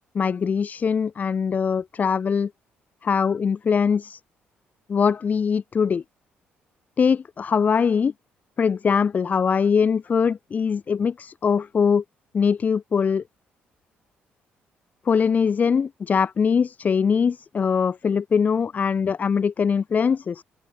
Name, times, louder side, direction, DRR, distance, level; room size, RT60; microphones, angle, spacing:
voice 1, 0.1-2.5 3.0-4.2 4.9-6.0 7.0-8.1 8.6-12.0 12.3-13.2 15.1-20.4, left 6 dB, 40° left, 2.5 m, -22 dB
cardioid pair, 100°, 4 cm